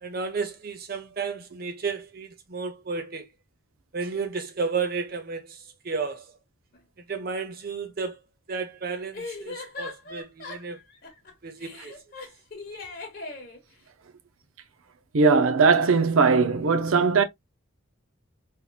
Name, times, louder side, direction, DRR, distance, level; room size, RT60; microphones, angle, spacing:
voice 1, 0.0-3.3 3.9-6.3 7.0-8.2 8.5-10.8 11.4-11.9, right 4 dB, 45° right, 0.7 m, -32 dB
sound 1, 6.7-6.8 9.1-11.3 11.6-13.6, left 3 dB, 45° left, 1.1 m, -39 dB
voice 2, 15.1-17.2, right 4 dB, 80° right, 0.6 m, -19 dB
3.7 x 2.9 x 2.2 m
head